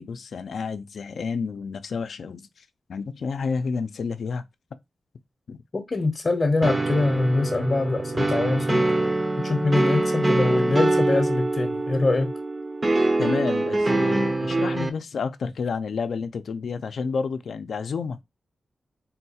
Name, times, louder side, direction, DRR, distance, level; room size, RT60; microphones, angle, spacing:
voice 1, 0.0-2.6 2.9-4.4 5.5-5.6 13.2-18.2, left 5 dB, 75° left, 0.4 m, -30 dB
voice 2, 5.7-8.8 9.4-12.3, left 2 dB, 40° left, 0.7 m, -23 dB
sound 1, 6.6-14.9, right 2 dB, 30° right, 0.6 m, -24 dB
3.8 x 2.3 x 2.7 m
cardioid pair, 80°, 0 cm